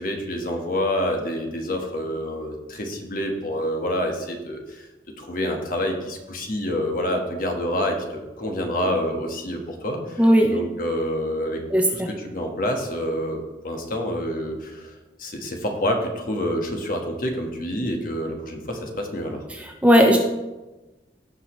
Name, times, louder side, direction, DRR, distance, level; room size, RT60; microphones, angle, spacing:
voice 1, 0.0-4.9 5.2-11.6 11.9-19.4, equal, 50° left, 2 dB, 1.5 m, -27 dB
voice 2, 10.2-10.6 11.7-12.1 19.6-20.2, equal, 10° right, 2 dB, 0.7 m, -17 dB
16.0 x 5.4 x 3.2 m, 1.1 s
head